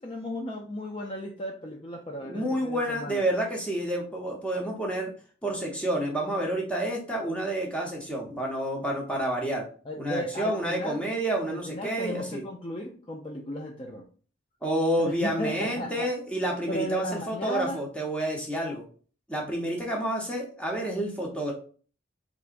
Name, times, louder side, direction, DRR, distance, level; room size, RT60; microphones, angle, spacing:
voice 1, 0.0-3.3 9.9-11.0 11.5-14.1 15.0-16.1 16.7-17.8, left 1 dB, 30° left, 0 dB, 0.4 m, -35 dB
voice 2, 2.3-5.1 5.4-9.7 10.0-12.4 14.6-18.8 19.3-21.5, right 1 dB, 5° left, -1 dB, 0.8 m, -29 dB
3.8 x 3.4 x 2.5 m, 0.41 s
head